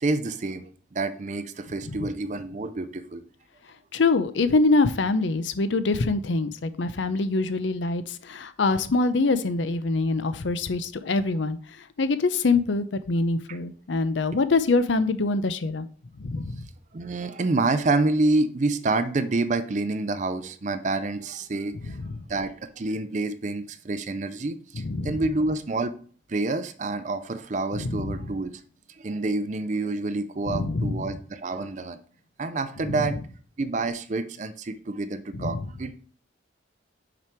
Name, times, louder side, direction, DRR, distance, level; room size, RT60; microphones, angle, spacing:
voice 1, 0.0-3.2 13.5-13.6 16.9-22.0 22.3-25.9 26.3-28.5 28.9-32.0 32.4-33.2 33.6-35.9, right 2 dB, 40° right, 11 dB, 0.5 m, -28 dB
voice 2, 3.9-11.6 12.0-15.9 16.2-16.6 21.8-22.2 24.7-25.2 27.7-28.3 30.5-31.1 32.8-33.1 35.3-35.7, left 3 dB, 80° left, 12 dB, 0.6 m, -25 dB
6.0 x 5.1 x 4.5 m, 0.44 s
head